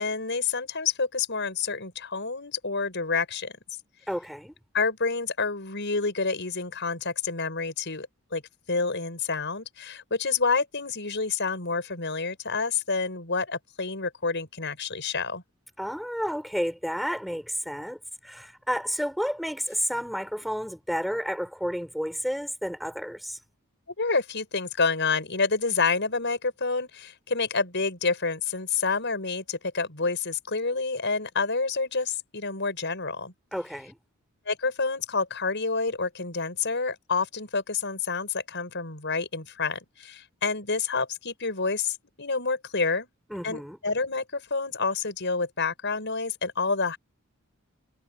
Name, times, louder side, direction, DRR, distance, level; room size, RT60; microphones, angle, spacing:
voice 1, 0.0-3.5 4.7-8.4 8.7-15.4 24.0-33.3 34.5-43.1 43.4-47.0, left 4 dB, 60° left, 6.6 m, -28 dB
voice 2, 4.1-4.5 15.8-18.0 18.2-23.4 33.5-34.0 43.3-43.8, equal, ahead, 5.2 m, -31 dB
head